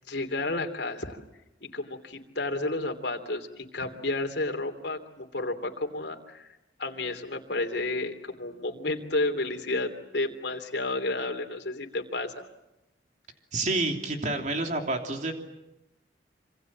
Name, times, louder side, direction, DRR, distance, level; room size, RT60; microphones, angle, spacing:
voice 1, 0.1-1.2 1.7-6.5 6.8-12.5, left 2 dB, 70° left, 5 dB, 3.1 m, -31 dB
voice 2, 13.5-15.3, right 2 dB, 40° right, 4 dB, 3.1 m, -28 dB
26.5 x 26.5 x 7.5 m, 0.91 s
head